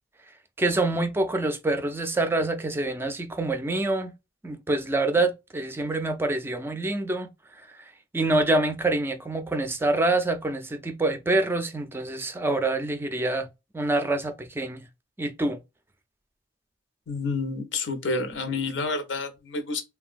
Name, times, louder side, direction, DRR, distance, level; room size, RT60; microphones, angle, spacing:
voice 1, 0.6-4.1 4.4-7.3 8.1-13.5 13.7-14.8 15.2-15.6, right 2 dB, 15° right, 0.3 m, -26 dB
voice 2, 17.1-19.8, left 3 dB, 85° left, 0.7 m, -29 dB
3.2 x 2.2 x 2.4 m
head